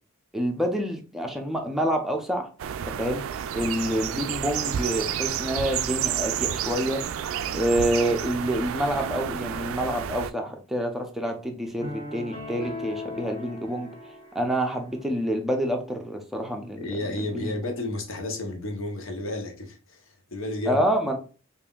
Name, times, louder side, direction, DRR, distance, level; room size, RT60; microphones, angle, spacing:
voice 1, 0.3-2.5 3.0-3.2 3.5-7.0 7.5-13.9 14.3-16.8 17.2-17.5 20.7-21.2, equal, ahead, 0.5 m, -27 dB
sound 1, 2.6-10.3, right 9 dB, 75° right, 0.3 m, -30 dB
sound 2, 11.8-15.1, left 2 dB, 25° left, 1.1 m, -38 dB
voice 2, 16.8-20.8, left 2 dB, 70° left, 0.8 m, -32 dB
5.3 x 2.5 x 2.3 m
head